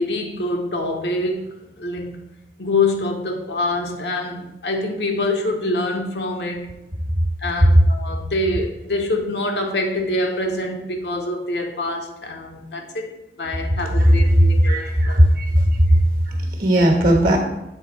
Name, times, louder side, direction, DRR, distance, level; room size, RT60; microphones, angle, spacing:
voice 1, 0.0-2.2 2.6-6.7 7.4-14.8 15.1-15.3, left 2 dB, 70° left, 3 dB, 0.9 m, -25 dB
voice 2, 14.7-16.0 16.6-17.4, equal, 55° right, 2 dB, 1.3 m, -16 dB
8.0 x 3.6 x 4.2 m, 0.91 s
head